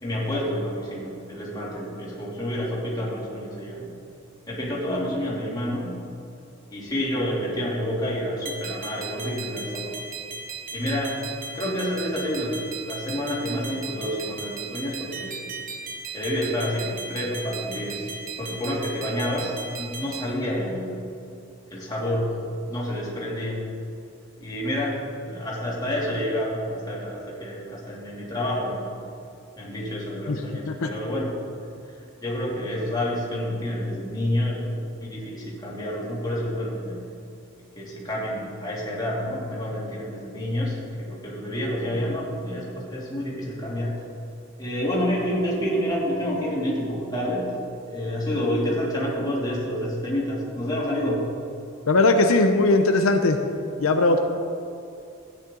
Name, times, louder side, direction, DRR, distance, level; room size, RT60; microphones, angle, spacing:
voice 1, 0.0-3.9 4.5-6.0 6.7-10.0 10.7-11.2 11.5-15.4 16.1-18.1 18.4-21.0 21.7-23.6 24.4-28.9 29.6-31.7 32.2-37.0 37.8-44.0 44.6-47.5 47.9-51.2, equal, 20° left, -6 dB, 2.8 m, -28 dB
sound 1, 8.5-20.3, right 4 dB, 40° right, 1.1 m, -37 dB
voice 2, 51.9-53.4 53.8-54.2, left 2 dB, 85° left, 5 dB, 0.7 m, -19 dB
15.0 x 9.5 x 3.9 m, 2.6 s
head